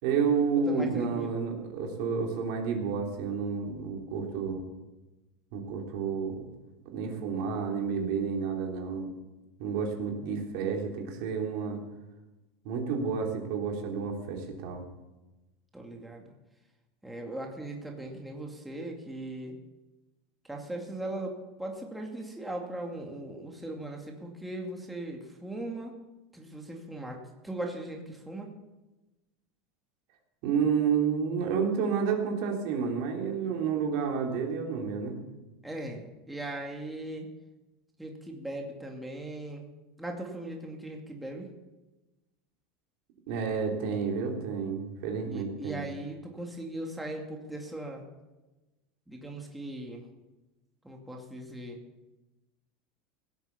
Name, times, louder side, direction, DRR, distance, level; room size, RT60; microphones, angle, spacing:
voice 1, 0.0-4.6 5.5-6.4 6.8-9.1 9.6-11.8 12.6-14.8 30.4-35.2 43.3-45.9, right 6 dB, 65° right, 1 dB, 3.3 m, -30 dB
voice 2, 0.5-1.4 15.7-16.2 17.0-19.6 20.4-25.9 26.3-28.5 35.6-37.3 38.0-39.6 40.0-41.5 45.2-48.0 49.1-50.0 50.8-51.8, right 1 dB, 5° right, 0 dB, 2.3 m, -39 dB
16.5 x 8.1 x 7.2 m, 1.1 s
supercardioid pair, 125°, 0 cm